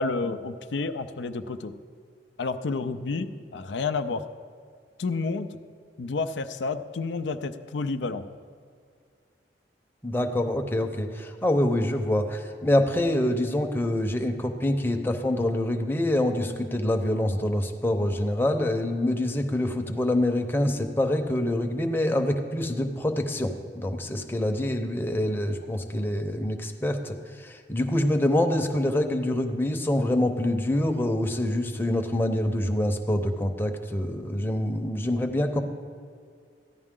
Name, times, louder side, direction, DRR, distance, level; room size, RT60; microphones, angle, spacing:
voice 1, 0.0-1.7 2.4-4.3 5.0-5.5 6.0-8.2, left 3 dB, 85° left, 10 dB, 0.5 m, -30 dB
voice 2, 10.0-35.6, left 1 dB, 15° left, 4 dB, 0.7 m, -26 dB
14.5 x 10.5 x 3.7 m, 2.2 s
head